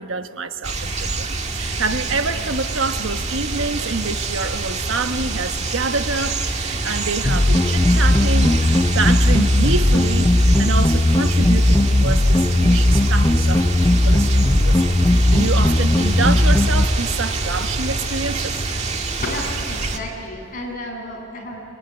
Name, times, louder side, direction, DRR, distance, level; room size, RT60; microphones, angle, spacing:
voice 1, 0.0-14.8 15.0-18.7, right 4 dB, 80° right, 8 dB, 1.2 m, -27 dB
sound 1, 0.6-20.0, right 3 dB, 35° right, 1.9 m, -26 dB
sound 2, 7.2-16.9, left 1 dB, 20° left, 0.5 m, -16 dB
voice 2, 19.2-21.6, left 1 dB, 45° left, -1 dB, 7.5 m, -31 dB
25.5 x 22.5 x 10.0 m, 2.8 s
head